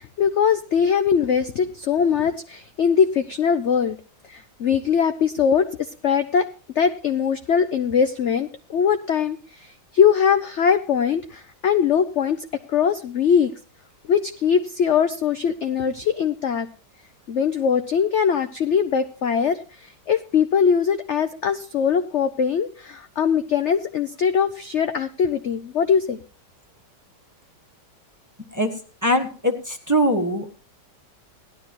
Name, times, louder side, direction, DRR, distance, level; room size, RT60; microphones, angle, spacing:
voice 1, 0.0-4.0 4.3-6.5 6.7-13.5 14.0-16.7 17.3-26.2, left 7 dB, 60° left, 9 dB, 0.8 m, -21 dB
voice 2, 29.0-30.6, equal, 10° right, 3 dB, 1.3 m, -22 dB
17.5 x 12.0 x 3.0 m, 0.36 s
omnidirectional pair, 1.9 m